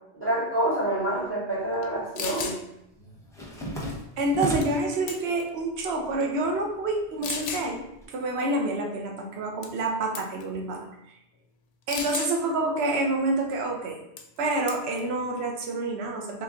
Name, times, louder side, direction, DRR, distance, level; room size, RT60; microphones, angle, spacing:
voice 1, 0.1-2.6, right 1 dB, 25° right, -7 dB, 0.9 m, -27 dB
sound 1, 1.1-1.9 2.2-5.0 5.4-6.1 6.4-8.0, equal, 5° left, 0.7 m, -36 dB
sound 2, 1.8-1.9 2.1-2.6 4.6-4.8 5.1-5.5 6.2-6.3 7.2-7.7 9.6-9.9 10.1-10.4 11.9-12.3 14.2-14.4 14.7-15.0, left 5 dB, 75° left, 0.8 m, -34 dB
voice 2, 4.2-10.9 11.9-14.0 14.4-16.4, right 2 dB, 70° right, 1 dB, 0.9 m, -28 dB
3.3 x 2.9 x 3.6 m, 0.84 s
omnidirectional pair, 1.1 m